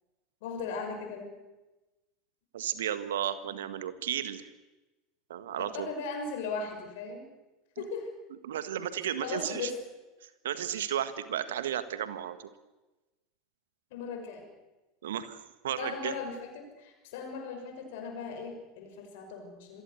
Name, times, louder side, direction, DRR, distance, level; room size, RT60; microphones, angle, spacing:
voice 1, 0.4-1.3 5.6-7.2 7.8-8.1 9.2-9.7 13.9-14.5 15.8-19.8, left 4 dB, 60° left, 4 dB, 6.1 m, -38 dB
voice 2, 2.5-4.5 5.3-5.9 8.4-9.7 10.4-12.4 15.0-16.1, right 10 dB, 70° right, 12 dB, 1.6 m, -33 dB
27.5 x 22.0 x 6.9 m, 1.1 s
figure-of-eight pair, 80°, 0 cm